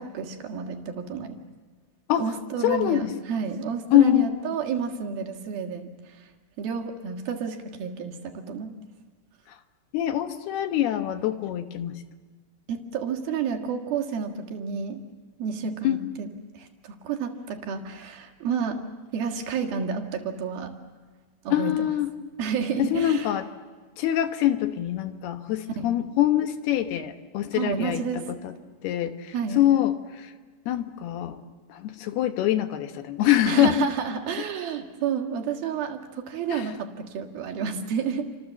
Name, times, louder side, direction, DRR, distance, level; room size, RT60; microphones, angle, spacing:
voice 1, 0.0-1.4 2.2-6.3 6.6-8.8 12.7-15.0 15.4-18.9 19.1-20.8 21.4-21.7 22.4-23.3 25.8-25.9 27.5-28.3 29.3-29.6 33.5-38.4, right 6 dB, 65° right, 4 dB, 3.4 m, -30 dB
voice 2, 2.6-3.1 3.9-4.4 9.9-11.9 15.8-16.0 21.5-22.1 22.8-23.5 24.0-28.0 28.4-28.5 28.8-30.3 30.7-31.4 31.7-33.8 36.5-36.7, left 12 dB, 75° left, 8 dB, 3.1 m, -24 dB
30.0 x 26.0 x 7.4 m, 1.4 s
omnidirectional pair, 4.8 m